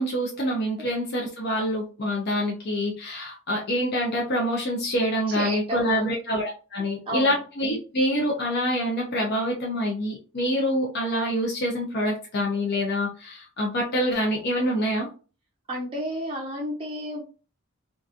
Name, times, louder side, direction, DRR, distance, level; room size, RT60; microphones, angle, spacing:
voice 1, 0.0-15.1, equal, 50° left, -3 dB, 0.6 m, -26 dB
voice 2, 5.3-6.1 7.1-7.4 15.7-17.2, right 1 dB, 25° right, -2 dB, 0.5 m, -31 dB
2.8 x 2.5 x 2.4 m, 0.36 s
head